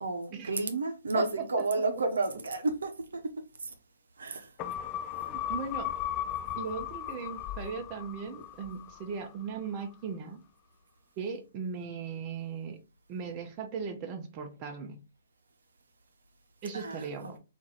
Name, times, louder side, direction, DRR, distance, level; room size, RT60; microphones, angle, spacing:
voice 1, 0.0-3.7 4.2-4.5 16.7-17.3, right 3 dB, 70° right, 0.7 m, -32 dB
voice 2, 1.1-1.8 5.3-6.0 6.5-10.4 11.2-12.8 13.1-15.0 16.6-17.4, right 6 dB, 30° right, 0.5 m, -38 dB
sound 1, 4.6-9.3 9.6-9.7, left 11 dB, 30° left, 0.4 m, -36 dB
2.8 x 2.5 x 4.0 m
figure-of-eight pair, 130°, 0 cm